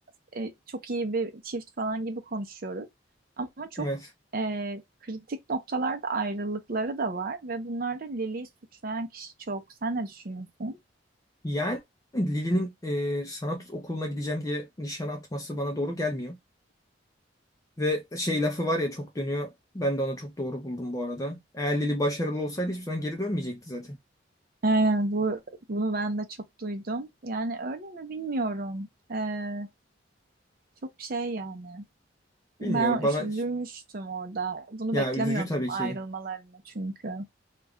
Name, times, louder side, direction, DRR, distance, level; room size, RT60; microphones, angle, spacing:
voice 1, 0.3-2.9 3.4-3.9 4.3-8.5 8.8-10.8 24.6-25.4 25.7-26.3 26.6-29.7 31.0-31.8 32.6-37.3, right 3 dB, 50° right, 0.6 m, -31 dB
voice 2, 11.4-11.8 12.1-16.4 17.8-24.0 32.6-33.3 34.9-36.0, equal, 20° left, 0.5 m, -30 dB
2.4 x 2.2 x 3.4 m
head